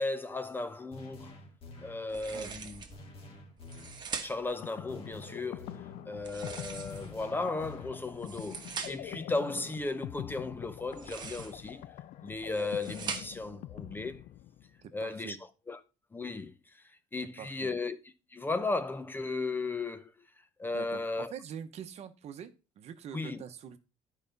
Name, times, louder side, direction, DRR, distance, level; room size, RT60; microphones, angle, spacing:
voice 1, 0.0-1.4 1.8-2.8 4.2-11.9 12.2-14.2 14.9-15.4 15.7-15.8 16.1-16.8 17.1-18.0 18.3-20.1 20.6-21.3 23.1-23.4, left 3 dB, 15° left, 0.6 m, -35 dB
sound 1, 0.9-2.1 2.9-4.1 4.9-6.1 6.9-8.1, left 2 dB, 45° left, 2.0 m, -49 dB
sound 2, 2.1-3.0 3.6-4.6 6.2-7.2 8.0-9.2 10.8-11.7 12.3-13.5, right 5 dB, 30° right, 1.2 m, -42 dB
voice 2, 2.3-2.8 14.8-15.4 17.4-17.8 20.7-23.8, right 8 dB, 50° right, 1.0 m, -45 dB
sound 3, 4.3-14.9, left 13 dB, 60° left, 0.4 m, -45 dB
11.0 x 5.0 x 4.0 m
cardioid pair, 130°, 14 cm